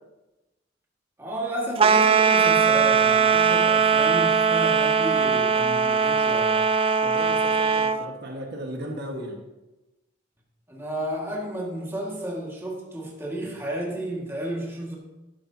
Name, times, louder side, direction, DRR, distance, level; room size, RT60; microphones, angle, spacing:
voice 1, 1.2-6.6 10.7-15.0, right 1 dB, 15° right, -2 dB, 1.8 m, -32 dB
sound 1, 1.8-8.0, right 6 dB, 30° right, 0.4 m, -20 dB
voice 2, 7.0-9.4, right 1 dB, 55° right, 1 dB, 1.5 m, -36 dB
11.5 x 11.5 x 2.8 m, 1.0 s
head